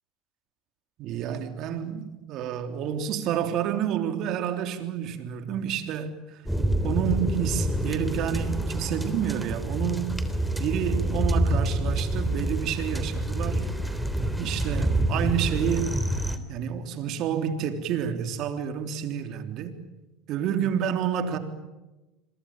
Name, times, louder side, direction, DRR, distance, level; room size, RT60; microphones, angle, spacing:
voice 1, 1.0-6.4 6.8-10.2 10.6-14.0 14.4-15.9 16.5-19.8 20.3-21.4, right 9 dB, 55° right, 3.4 m, -29 dB
sound 1, 6.5-16.4, right 1 dB, ahead, 3.3 m, -27 dB
27.0 x 23.5 x 9.0 m
hypercardioid pair, 85°, 0 cm